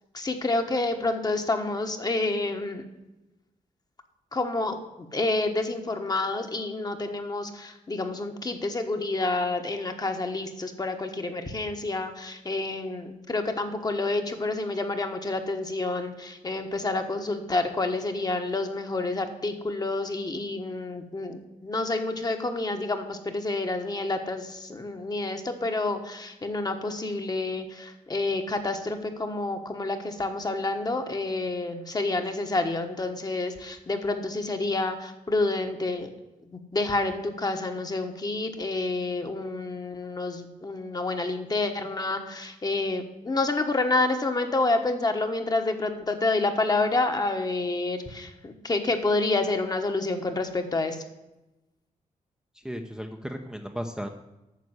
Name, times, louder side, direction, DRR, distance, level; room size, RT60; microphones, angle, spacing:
voice 1, 0.1-2.8 4.3-4.8 5.1-36.1 36.5-51.0, left 2 dB, 30° left, 5 dB, 1.3 m, -28 dB
voice 2, 52.5-54.1, equal, 5° right, 3 dB, 0.7 m, -35 dB
9.3 x 6.7 x 8.1 m, 0.99 s
wide cardioid pair, 115°, 14 cm